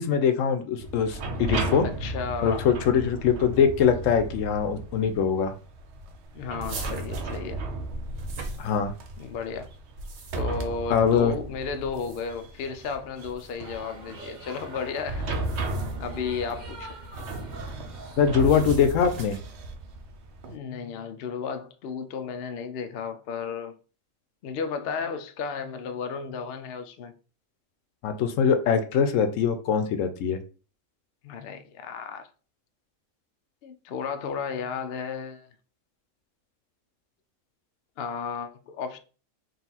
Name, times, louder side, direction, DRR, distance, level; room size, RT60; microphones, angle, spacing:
voice 1, 0.0-1.8 2.4-5.5 8.6-8.9 10.9-11.3 18.2-19.4 28.0-30.4, left 7 dB, 80° left, 1.0 m, -22 dB
sound 1, 0.8-20.6, right 2 dB, 65° right, 0.8 m, -35 dB
voice 2, 1.8-2.7 6.3-7.6 9.2-9.7 10.4-15.4 16.0-17.0 20.5-23.8 24.4-27.1 31.2-32.3 33.6-35.5 38.0-39.0, left 5 dB, 65° left, 0.6 m, -33 dB
sound 2, 6.6-9.2 9.8-10.6 11.8-12.5 13.3-13.5 15.3-16.1 17.0-17.5 18.4-19.6, right 2 dB, 85° right, 1.3 m, -40 dB
sound 3, 13.6-18.6, right 2 dB, 40° right, 1.1 m, -44 dB
4.0 x 2.4 x 4.0 m
omnidirectional pair, 1.3 m